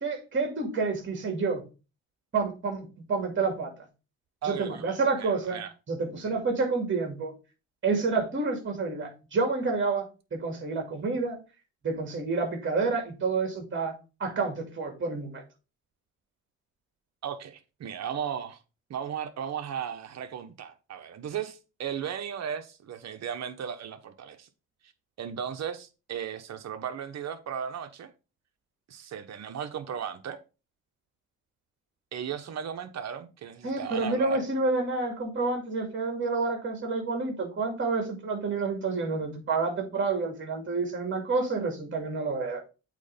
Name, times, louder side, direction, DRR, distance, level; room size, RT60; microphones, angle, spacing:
voice 1, 0.0-1.6 2.3-3.7 4.4-5.6 5.9-7.3 7.8-11.4 11.8-15.4 33.6-42.6, right 4 dB, 40° right, 2.5 m, -29 dB
voice 2, 4.4-5.7 17.2-18.6 18.9-24.5 25.2-28.1 28.9-30.4 32.1-34.5, right 8 dB, 60° right, 1.2 m, -36 dB
8.3 x 3.3 x 5.3 m
cardioid pair, 90°, 30 cm